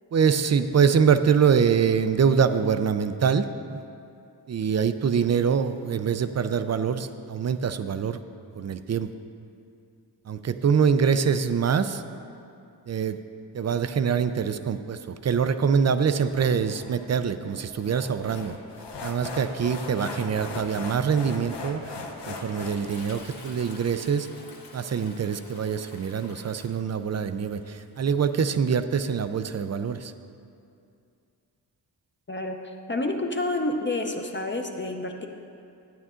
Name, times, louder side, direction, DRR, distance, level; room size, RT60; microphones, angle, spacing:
voice 1, 0.1-3.8 4.5-8.2 8.6-9.1 10.3-12.0 12.9-13.2 13.5-18.6 19.0-21.9 22.3-24.3 24.7-30.1, right 6 dB, 40° right, 11 dB, 0.4 m, -24 dB
sound 1, 16.3-23.2, left 3 dB, 75° left, 1.0 m, -39 dB
Toilet flush, 22.1-30.0, left 2 dB, 55° left, 1.4 m, -49 dB
voice 2, 32.9-35.3, left 2 dB, 25° left, 3 dB, 0.7 m, -28 dB
12.0 x 9.4 x 3.7 m, 2.5 s
wide cardioid pair, 115°, 42 cm